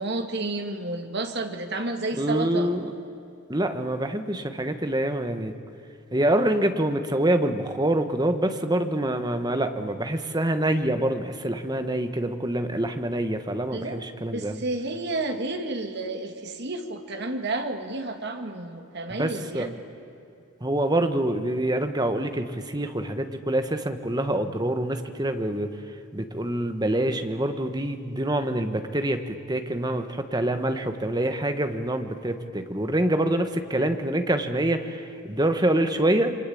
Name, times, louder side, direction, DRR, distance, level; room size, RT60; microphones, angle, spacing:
voice 1, 0.0-2.7 13.7-19.7, right 2 dB, 50° right, 5 dB, 2.1 m, -31 dB
voice 2, 2.1-2.9 3.5-5.5 6.1-14.6 19.2-19.7 20.6-25.7 26.1-36.4, right 1 dB, 20° right, 8 dB, 1.2 m, -26 dB
27.5 x 24.0 x 8.6 m, 2.8 s
head